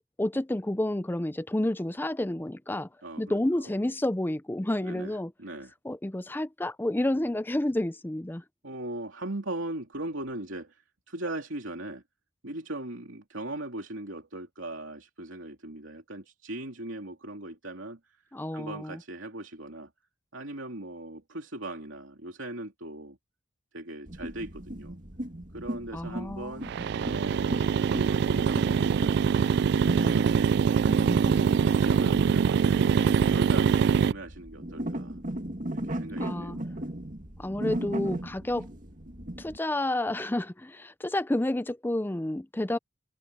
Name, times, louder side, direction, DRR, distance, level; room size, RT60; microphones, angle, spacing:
voice 1, 0.2-2.9 3.2-5.3 5.8-8.4 18.3-19.0 25.9-26.7 36.2-36.6 37.4-38.7 39.4-42.8, left 1 dB, 10° left, 0.5 m, -30 dB
voice 2, 3.0-3.6 4.8-5.7 7.1-7.4 8.6-12.0 12.4-18.2 18.5-19.9 20.3-23.2 23.7-25.0 25.5-26.7 27.1-29.0 29.6-30.7 31.2-32.9 33.3-35.2 35.7-36.6, right 1 dB, 80° right, 2.9 m, -39 dB
sound 1, 24.1-39.6, right 1 dB, 45° right, 2.6 m, -37 dB
sound 2, 26.7-34.1, right 6 dB, 60° right, 0.3 m, -24 dB
head